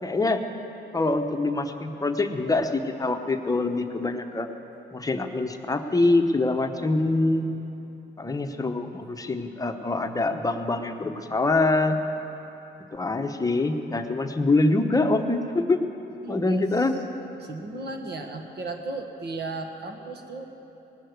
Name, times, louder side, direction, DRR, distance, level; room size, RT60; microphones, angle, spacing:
voice 1, 0.0-0.4 0.9-4.5 4.9-7.5 8.2-12.0 12.9-15.8 16.3-16.9, left 2 dB, 20° left, 6 dB, 0.9 m, -24 dB
voice 2, 16.2-16.9 17.4-20.4, right 2 dB, 60° right, 4 dB, 1.5 m, -35 dB
19.0 x 6.5 x 8.0 m, 2.9 s
cardioid pair, 90°, 20 cm